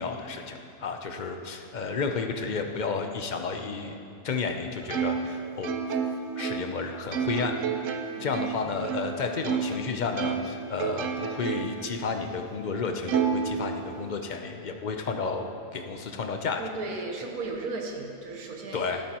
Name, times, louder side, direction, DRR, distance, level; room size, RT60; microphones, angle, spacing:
voice 1, 0.0-4.0 4.2-5.7 6.4-7.6 8.2-16.6 18.7-19.0, left 4 dB, 50° left, 5 dB, 0.5 m, -32 dB
Plucked string instrument, 4.9-9.8 10.2-11.9 12.3-12.4 13.1-14.2, right 6 dB, 65° right, 1.0 m, -30 dB
voice 2, 16.6-19.0, right 3 dB, 80° right, 1 dB, 1.6 m, -35 dB
13.0 x 12.5 x 3.0 m, 2.6 s
omnidirectional pair, 1.5 m